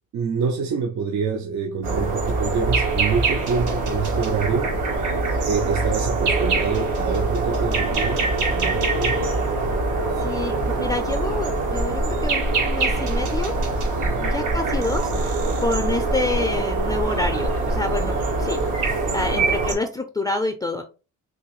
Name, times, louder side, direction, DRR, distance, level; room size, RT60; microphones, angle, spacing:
voice 1, 0.1-4.8 5.5-9.2 13.9-14.2, right 5 dB, 65° right, 0.6 m, -26 dB
sound 1, 1.8-19.7, right 3 dB, 85° right, 1.3 m, -23 dB
voice 2, 10.2-13.5 14.2-20.8, left 2 dB, 15° left, 0.4 m, -28 dB
3.7 x 2.6 x 3.0 m
cardioid pair, 90°, 30 cm